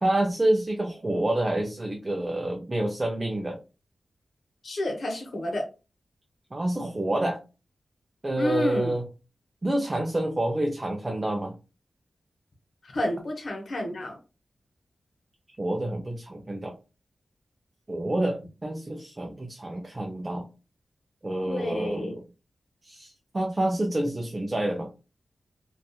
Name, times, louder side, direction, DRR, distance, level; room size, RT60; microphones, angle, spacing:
voice 1, 0.0-3.6 6.5-7.4 8.2-9.0 9.6-11.5 15.6-16.7 17.9-20.5 21.2-22.2 22.8-24.9, right 1 dB, 30° right, 2 dB, 0.4 m, -28 dB
voice 2, 4.6-5.6 8.4-8.9 12.8-14.2 21.5-22.1, left 1 dB, 70° left, 2 dB, 0.9 m, -30 dB
2.7 x 2.3 x 2.2 m, 0.30 s
wide cardioid pair, 80°, 0 cm